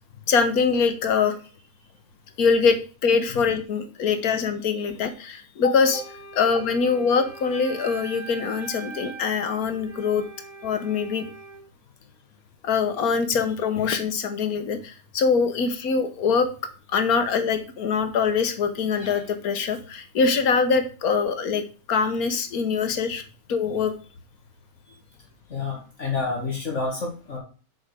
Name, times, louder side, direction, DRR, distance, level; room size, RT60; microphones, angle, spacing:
voice 1, 0.3-1.4 2.4-6.0 6.3-10.2 10.6-11.3 12.6-16.5 16.9-21.6 21.9-23.2 23.5-23.9, left 5 dB, 90° left, 9 dB, 1.5 m, -23 dB
Wind instrument woodwind instrument, 5.7-11.6, right 3 dB, 70° right, 3.3 m, -42 dB
voice 2, 25.5-27.4, left 4 dB, 55° left, -1 dB, 1.9 m, -29 dB
7.1 x 4.9 x 6.6 m, 0.38 s
omnidirectional pair, 1.5 m